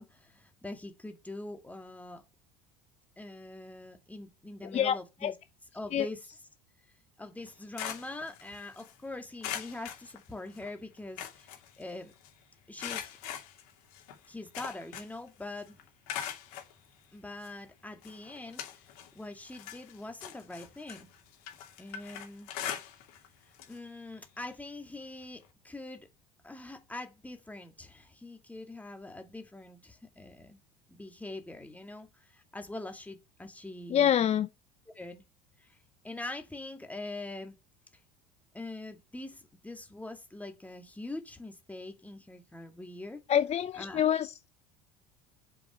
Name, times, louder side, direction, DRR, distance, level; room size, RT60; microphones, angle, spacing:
voice 1, 0.0-2.2 3.2-5.4 5.7-6.4 7.2-12.1 12.7-13.2 14.3-15.8 17.1-18.8 19.1-21.1 21.8-22.5 23.7-26.1 26.4-30.6 30.9-34.1 34.9-35.2 35.6-35.8 36.0-37.6 38.5-43.2 43.8-44.0, left 2 dB, 5° left, 2.2 m, -43 dB
sound 1, 7.4-8.9 9.4-10.7 11.0-12.3 12.8-15.3 15.6-16.7 17.4-17.5 18.0-19.1 19.5-23.3 23.5-23.8 24.1-24.2 25.4-25.5, left 10 dB, 65° left, 2.7 m, -41 dB
voice 2, 33.9-34.5 43.3-44.5, left 9 dB, 35° left, 0.7 m, -26 dB
7.6 x 5.7 x 6.3 m
hypercardioid pair, 70°, 20 cm